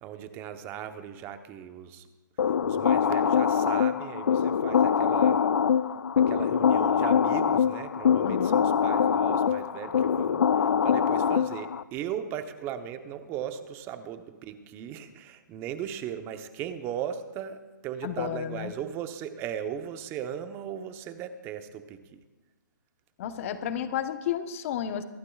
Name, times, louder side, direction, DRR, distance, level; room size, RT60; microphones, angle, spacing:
voice 1, 0.0-2.0 2.7-5.4 6.2-10.4 10.8-22.0, right 9 dB, 20° right, 9 dB, 0.8 m, -37 dB
sound 1, 2.4-11.8, left 7 dB, 80° left, 0.5 m, -24 dB
voice 2, 8.2-8.6 18.0-18.8 23.2-25.0, left 9 dB, 40° left, 10 dB, 0.9 m, -32 dB
24.0 x 12.0 x 2.4 m, 1.2 s
hypercardioid pair, 150°, 11 cm